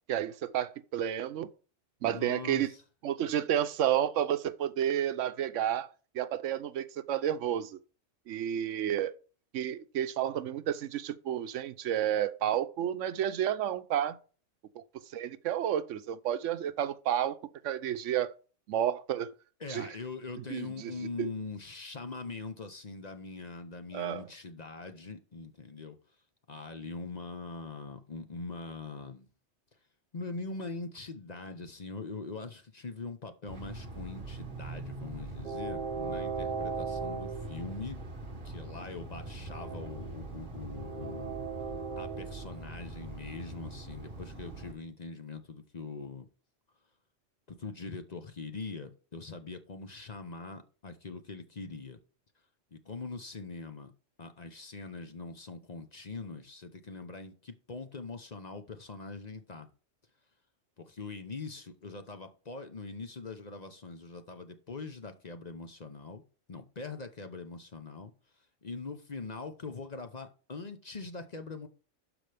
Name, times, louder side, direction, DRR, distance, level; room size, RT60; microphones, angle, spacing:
voice 1, 0.1-1.5 2.0-2.7 3.0-5.9 6.1-7.8 8.3-9.1 9.5-14.2 15.1-17.4 17.6-18.3 18.7-19.3 19.7-19.9 20.5-20.9 21.2-21.3 23.9-24.2, right 10 dB, 80° right, 1.0 m, -31 dB
voice 2, 2.0-2.8 19.6-26.0 26.5-29.3 30.1-38.0 38.4-41.4 42.0-46.3 47.5-52.0 52.7-53.9 54.2-59.7 60.8-66.2 66.5-68.1 68.6-71.7, left 3 dB, 40° left, 0.8 m, -42 dB
Train, 33.5-44.7, right 4 dB, 45° right, 1.6 m, -39 dB
12.0 x 4.9 x 3.4 m
omnidirectional pair, 1.3 m